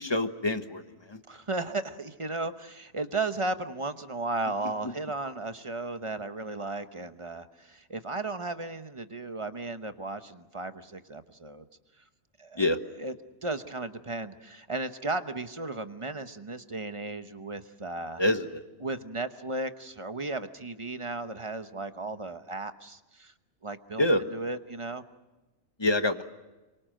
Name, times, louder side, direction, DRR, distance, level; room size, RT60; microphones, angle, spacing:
voice 1, 0.0-1.2 4.8-4.9 12.5-12.8 18.2-18.6 24.0-24.2 25.8-26.2, left 1 dB, 25° left, 8 dB, 1.2 m, -26 dB
voice 2, 1.3-11.6 12.4-12.6 13.0-13.1 13.4-18.2 18.8-23.3 23.6-24.0 24.3-25.0, right 2 dB, 30° right, 9 dB, 1.0 m, -35 dB
26.5 x 24.0 x 7.7 m, 1.1 s
omnidirectional pair, 1.2 m